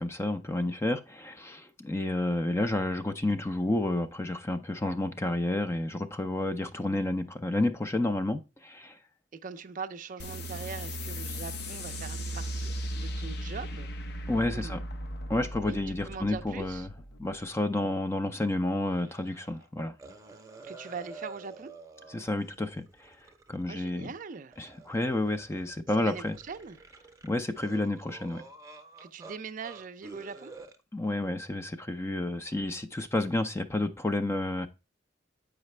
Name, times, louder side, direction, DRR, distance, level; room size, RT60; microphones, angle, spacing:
voice 1, 0.0-9.0 14.3-14.8 15.3-16.9 17.2-19.9 22.1-23.2 23.5-24.1 24.6-26.3 27.2-28.4 30.9-34.7, left 2 dB, 15° left, 0.4 m, -30 dB
voice 2, 9.3-13.9 14.5-14.8 15.6-15.8 16.0-16.9 20.6-21.7 23.7-24.6 26.0-26.8 29.0-30.5, right 5 dB, 45° right, 0.4 m, -41 dB
sound 1, 10.2-17.3, equal, 60° left, 0.7 m, -37 dB
sound 2, 18.9-19.7 20.0-24.2 24.5-25.8 26.1-29.4 29.6-30.8, right 3 dB, 20° right, 0.7 m, -49 dB
8.1 x 4.9 x 3.2 m
head